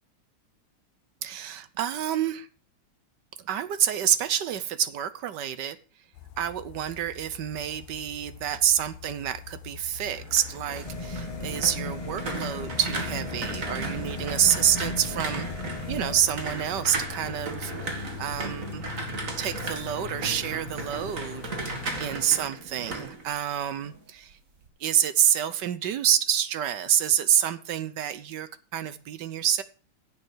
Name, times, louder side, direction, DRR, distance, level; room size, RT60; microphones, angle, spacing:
voice 1, 1.2-2.5 3.4-5.8 6.4-15.5 15.9-18.9 19.4-24.4 24.8-29.6, right 10 dB, 65° right, 1.2 m, -27 dB
sound 1, 6.1-22.3, left 12 dB, 75° left, 1.5 m, -42 dB
sound 2, 10.0-24.0 24.3-24.7, right 3 dB, 40° right, 2.2 m, -36 dB
sound 3, 10.9-16.2, left 2 dB, 20° left, 1.0 m, -36 dB
10.5 x 7.7 x 6.1 m
omnidirectional pair, 2.4 m